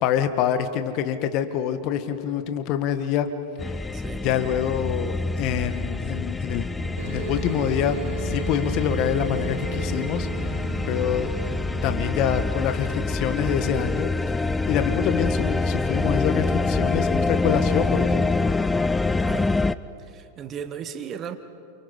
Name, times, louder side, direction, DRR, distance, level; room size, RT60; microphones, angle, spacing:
voice 1, 0.0-3.3 3.6-6.7 7.1-10.6 10.9-11.3 11.8-18.4, left 9 dB, 45° left, 1.9 m, -26 dB
sound 1, 3.6-19.7, left 3 dB, 10° left, 0.7 m, -26 dB
sound 2, 7.0-12.0, right 7 dB, 75° right, 7.3 m, -36 dB
voice 2, 20.1-21.4, right 8 dB, 30° right, 1.8 m, -35 dB
29.5 x 28.5 x 5.6 m
figure-of-eight pair, 90°, 0 cm